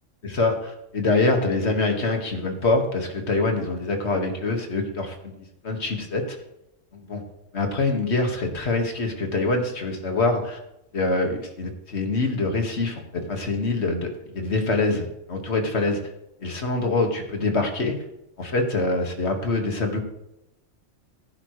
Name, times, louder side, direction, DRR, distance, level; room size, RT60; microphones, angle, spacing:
voice 1, 0.2-6.4 7.1-7.2 7.5-10.6 10.9-16.0 16.4-18.0 18.4-20.0, left 3 dB, 60° left, 4 dB, 2.0 m, -25 dB
16.0 x 9.8 x 3.2 m, 0.85 s
omnidirectional pair, 1.3 m